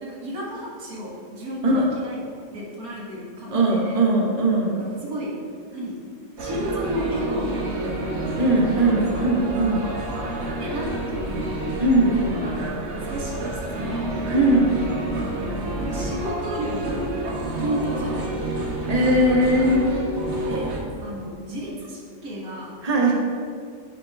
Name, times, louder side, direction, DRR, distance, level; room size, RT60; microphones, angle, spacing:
voice 1, 0.0-2.2 2.5-4.0 4.8-5.4 5.7-6.0 6.4-8.4 8.8-9.0 10.6-11.7 12.6-13.4 13.7-14.2 15.8-17.1 17.6-18.7 20.5-22.8, equal, 80° right, -3 dB, 2.1 m, -32 dB
voice 2, 3.5-4.8 8.4-9.9 11.8-12.2 14.3-14.8 18.9-19.8 22.8-23.1, right 1 dB, 25° right, -2 dB, 1.4 m, -19 dB
sound 1, 6.4-20.8, right 1 dB, 55° right, 1.4 m, -28 dB
10.5 x 7.1 x 3.5 m, 2.3 s
omnidirectional pair, 1.5 m